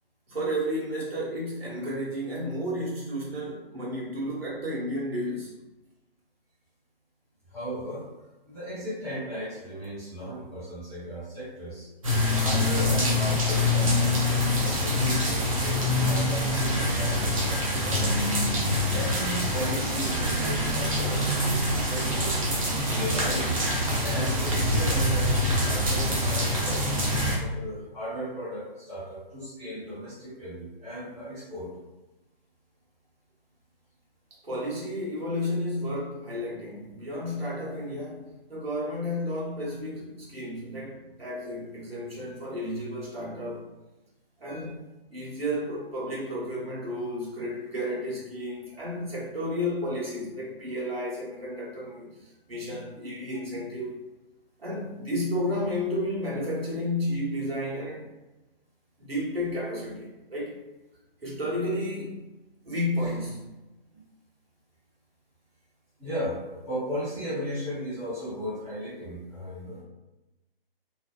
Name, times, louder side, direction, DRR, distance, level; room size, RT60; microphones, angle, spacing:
voice 1, 0.3-5.5 34.4-43.6 44.4-44.8 45.1-52.1 52.5-54.0 54.6-58.0 59.0-60.6 61.2-62.3 62.6-63.4, left 1 dB, 75° right, -6 dB, 1.1 m, -32 dB
voice 2, 7.5-8.0 8.5-11.9 12.4-18.4 18.9-22.4 22.9-23.7 24.0-31.7 63.9-64.0 66.0-69.8, equal, 5° left, -18 dB, 0.8 m, -36 dB
sound 1, 12.0-27.4, left 1 dB, 35° right, 0.5 m, -25 dB
2.6 x 2.1 x 2.3 m, 1.0 s
figure-of-eight pair, 140°, 29 cm